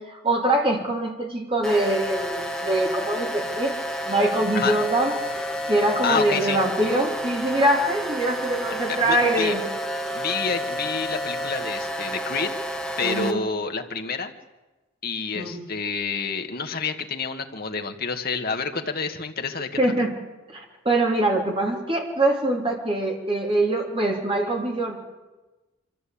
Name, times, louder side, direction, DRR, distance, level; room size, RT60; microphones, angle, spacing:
voice 1, 0.0-3.8 4.1-5.2 5.7-9.6 13.0-13.4 15.3-15.6 19.8-20.2 20.5-25.0, right 1 dB, 25° right, 0 dB, 3.4 m, -23 dB
sound 1, 1.6-13.3, equal, 5° left, 1.4 m, -30 dB
voice 2, 6.0-6.6 8.9-9.5 10.1-12.5 13.0-14.3 15.0-19.7, left 5 dB, 45° left, 5 dB, 1.6 m, -28 dB
24.5 x 14.0 x 8.5 m, 1.2 s
head